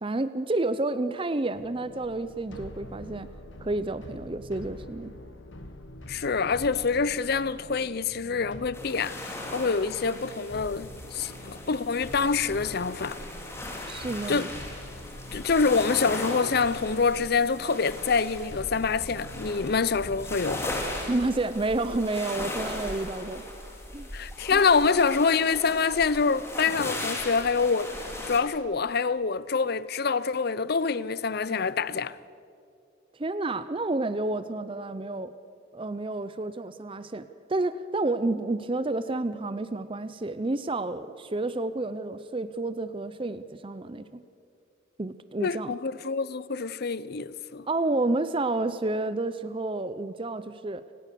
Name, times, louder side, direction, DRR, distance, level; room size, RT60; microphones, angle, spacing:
voice 1, 0.0-3.3 3.6-5.1 13.9-14.5 21.0-23.4 23.9-24.1 33.2-35.3 35.7-44.2 45.0-45.7 47.7-50.8, right 2 dB, 25° right, 0.6 m, -30 dB
sound 1, 1.6-21.2, left 1 dB, 70° left, 1.6 m, -45 dB
voice 2, 6.1-13.2 14.3-14.5 15.3-20.7 24.1-27.9 28.3-32.2 45.4-47.7, left 5 dB, 50° left, 0.6 m, -26 dB
sound 2, 8.7-28.4, left 1 dB, 15° left, 3.0 m, -38 dB
30.0 x 18.0 x 6.8 m
head